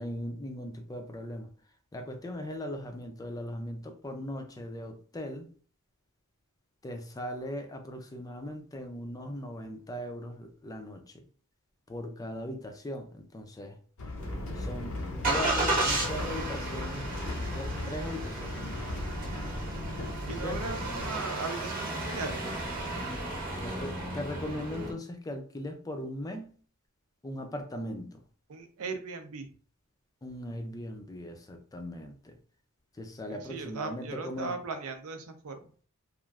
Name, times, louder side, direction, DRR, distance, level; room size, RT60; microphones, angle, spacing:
voice 1, 0.0-1.5 1.9-5.5 6.8-11.3 11.9-13.8 14.5-17.1 17.5-18.7 20.4-20.8 23.6-26.5 27.2-28.2 30.2-32.4 32.9-34.5, left 1 dB, 15° left, 5 dB, 0.3 m, -39 dB
sound 1, 14.0-21.1, left 2 dB, 60° left, 0.6 m, -38 dB
Engine starting, 14.2-24.9, right 2 dB, 40° right, 0.8 m, -34 dB
voice 2, 20.3-22.5 28.5-29.5 33.3-35.7, right 4 dB, 70° right, 7 dB, 0.5 m, -38 dB
3.0 x 2.4 x 2.3 m, 0.43 s
head